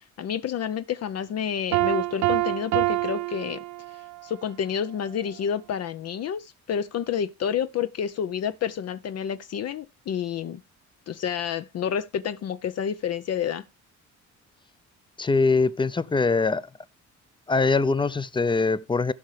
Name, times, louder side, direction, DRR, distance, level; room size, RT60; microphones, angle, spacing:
voice 1, 0.2-3.6 4.2-10.6 11.1-13.6, left 8 dB, 55° left, 0.6 m, -29 dB
Piano, 1.7-4.3, right 20 dB, 70° right, 0.5 m, -26 dB
voice 2, 15.2-16.6 17.5-19.1, left 4 dB, 15° left, 0.5 m, -22 dB
16.0 x 5.6 x 3.2 m
cardioid pair, 90°, 30 cm